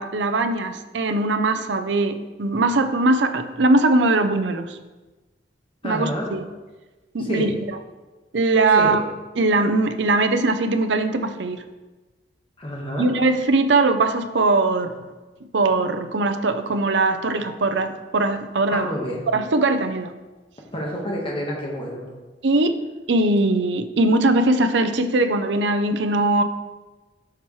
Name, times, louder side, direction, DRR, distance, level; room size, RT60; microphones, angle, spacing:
voice 1, 0.0-4.8 5.8-6.5 7.1-7.8 8.3-9.0 9.4-11.6 13.0-14.9 15.5-18.9 19.3-20.1 22.4-22.8 23.1-26.4, right 2 dB, 75° right, 9 dB, 0.6 m, -20 dB
voice 2, 5.8-6.3 7.2-7.5 8.7-9.0 12.6-13.1 18.7-19.2 20.7-22.1, equal, 30° left, -2 dB, 1.4 m, -28 dB
12.0 x 4.7 x 3.2 m, 1.2 s
head